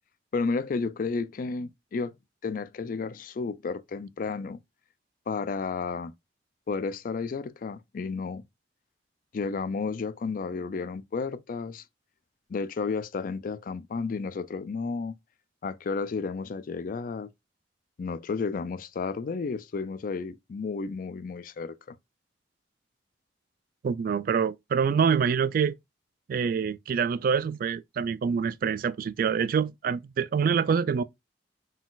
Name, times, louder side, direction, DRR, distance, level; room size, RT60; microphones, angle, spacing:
voice 1, 0.3-2.1 2.4-4.6 5.3-6.1 6.7-8.4 9.3-11.8 12.5-15.1 15.6-17.3 18.0-22.0, left 4 dB, 50° left, 0.4 m, -32 dB
voice 2, 23.8-25.7 26.3-31.0, right 6 dB, 55° right, 0.3 m, -26 dB
4.0 x 2.4 x 3.9 m
head